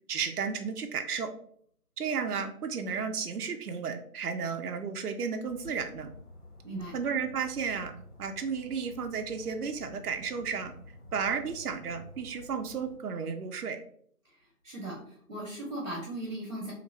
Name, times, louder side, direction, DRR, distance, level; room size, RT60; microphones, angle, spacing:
voice 1, 0.1-1.3 2.0-6.1 6.9-7.9 8.2-10.7 11.1-13.8, right 6 dB, 75° right, 6 dB, 0.5 m, -33 dB
sound 1, 5.4-13.0, left 1 dB, 85° left, 1.5 m, -51 dB
voice 2, 14.6-16.7, right 1 dB, 55° right, -3 dB, 0.9 m, -38 dB
3.1 x 2.9 x 2.6 m, 0.62 s
figure-of-eight pair, 170°, 45 cm